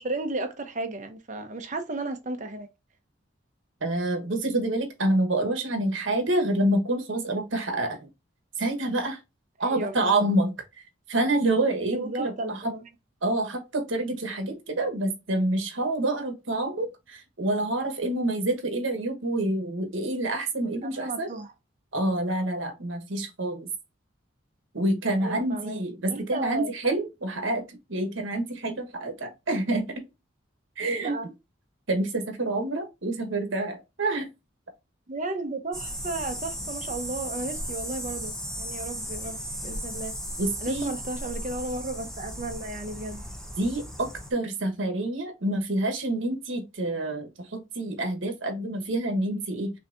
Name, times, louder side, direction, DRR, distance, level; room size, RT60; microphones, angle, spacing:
voice 1, 0.0-2.7 9.6-10.3 11.9-12.9 20.8-21.5 25.2-25.8 26.1-26.7 31.0-31.3 35.1-40.1 40.6-43.2, right 2 dB, 40° right, 0.8 m, -34 dB
voice 2, 3.8-8.1 8.6-9.2 9.6-10.5 11.1-12.7 13.2-21.3 21.9-23.7 24.7-30.0 30.8-31.1 31.9-34.3 40.4-40.9 43.6-49.7, right 2 dB, 75° right, 1.2 m, -27 dB
sound 1, 35.7-44.3, equal, 5° left, 0.7 m, -36 dB
5.6 x 2.8 x 2.5 m
head